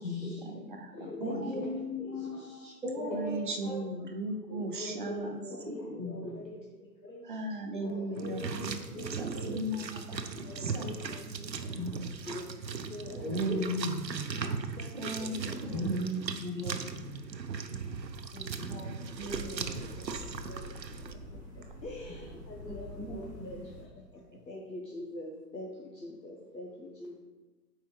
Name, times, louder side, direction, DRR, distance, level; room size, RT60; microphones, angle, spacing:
voice 1, 0.0-1.7 2.0-3.4 4.5-9.6 10.4-11.7 12.2-13.7 14.6-15.7 16.8-16.9 17.4-18.9 19.2-20.8 21.1-27.2, left 2 dB, 80° left, -2 dB, 1.2 m, -43 dB
voice 2, 1.2-3.9 5.9-6.2 11.7-12.0 13.2-14.3 15.7-17.0 18.5-19.0 22.6-23.6, equal, 5° right, -15 dB, 1.6 m, -36 dB
voice 3, 3.1-5.4 5.7-5.8 7.2-8.8 9.1-10.2 10.6-10.9 14.9-16.3 19.2-19.8 20.1-20.2, right 1 dB, 30° right, 4 dB, 0.5 m, -37 dB
sound 1, 8.2-21.1, right 5 dB, 85° right, 0.7 m, -38 dB
sound 2, 19.1-23.8, equal, 15° left, 2.2 m, -46 dB
8.9 x 4.6 x 3.3 m, 1.2 s
figure-of-eight pair, 125°, 50 cm